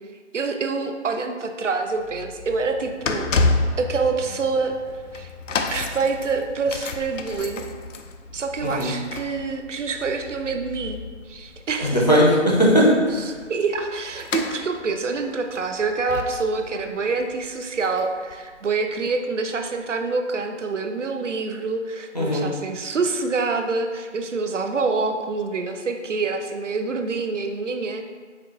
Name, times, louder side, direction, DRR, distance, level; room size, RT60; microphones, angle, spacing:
voice 1, 0.3-3.3 3.8-4.8 5.1-5.3 5.7-7.7 8.3-11.0 11.3-12.0 13.3-28.0, right 4 dB, 75° right, 5 dB, 0.5 m, -26 dB
sound 1, 2.0-18.9 19.6-19.7, left 3 dB, 85° left, 0.5 m, -31 dB
voice 2, 8.6-8.9 11.8-13.3 22.1-22.5, equal, 35° left, -4 dB, 0.6 m, -18 dB
4.6 x 2.4 x 3.5 m, 1.5 s
figure-of-eight pair, 170°, 37 cm